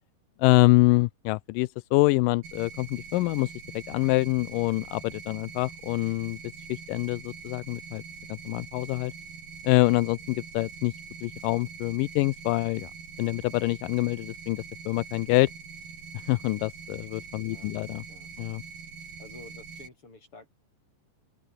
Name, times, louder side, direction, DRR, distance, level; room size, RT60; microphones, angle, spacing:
voice 1, 0.4-6.4 6.7-8.0 8.3-9.1 9.6-10.9 11.2-12.9 13.2-15.5 16.3-18.0 18.4-18.6, left 21 dB, 80° left, 2.1 m, -25 dB
sound 1, 2.4-19.9, right 6 dB, 80° right, 6.6 m, -44 dB
voice 2, 17.4-17.7 18.1-18.3 19.2-20.5, left 3 dB, 35° left, 7.6 m, -50 dB
open air
omnidirectional pair, 4.1 m